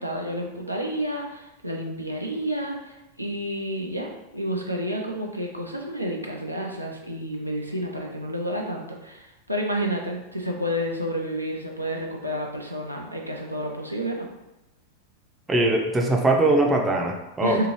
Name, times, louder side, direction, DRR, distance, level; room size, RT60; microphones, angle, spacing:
voice 1, 0.0-14.3 17.4-17.7, equal, 85° right, 0 dB, 0.4 m, -30 dB
voice 2, 15.5-17.7, right 2 dB, 15° right, 1 dB, 0.5 m, -21 dB
2.7 x 2.5 x 3.0 m, 0.95 s
figure-of-eight pair, 90°, 0 cm